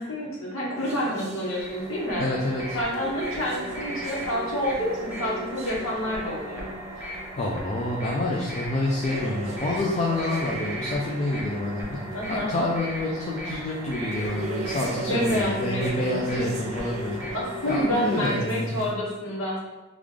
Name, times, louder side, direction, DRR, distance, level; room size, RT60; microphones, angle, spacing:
voice 1, 0.0-2.3 2.7-6.7 12.1-12.5 15.0-16.5 17.3-19.6, equal, 80° left, -5 dB, 1.1 m, -28 dB
sound 1, 0.7-18.9, equal, 35° right, 0.4 m, -38 dB
sound 2, 1.4-18.5, right 1 dB, 10° right, 0.7 m, -38 dB
voice 2, 2.2-2.8 7.4-12.0 12.3-17.2 17.7-18.7, left 1 dB, 35° left, -2 dB, 0.4 m, -28 dB
3.6 x 2.4 x 3.1 m, 1.1 s
head